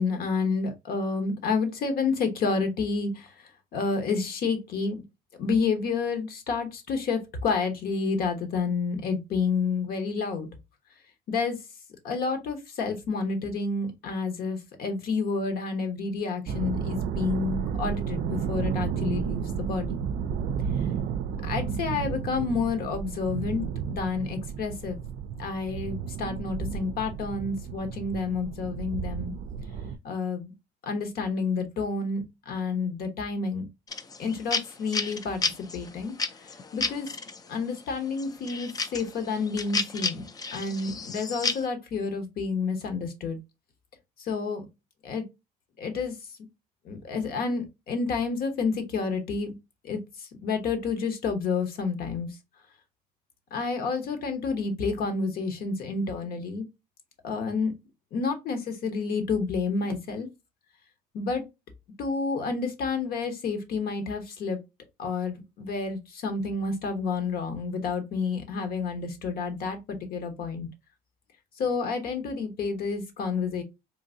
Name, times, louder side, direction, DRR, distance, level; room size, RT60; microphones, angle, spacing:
voice 1, 0.0-3.3 3.7-5.0 5.4-10.5 11.3-11.6 12.0-20.1 21.4-25.0 25.4-29.3 30.0-30.5 30.8-33.7 34.2-36.1 36.7-37.1 37.5-43.4 44.2-44.7 45.0-45.2 45.8-46.1 46.8-49.5 49.8-52.3 53.5-56.7 57.2-57.7 58.1-60.3 61.1-61.4 62.0-64.6 65.0-70.7 71.6-73.6, left 4 dB, 65° left, 1.1 m, -29 dB
sound 1, 16.5-30.0, right 7 dB, 60° right, 0.4 m, -32 dB
sound 2, 33.9-37.4 37.9-41.6, left 4 dB, 20° left, 0.4 m, -31 dB
3.8 x 2.6 x 2.6 m
cardioid pair, 110°, 17 cm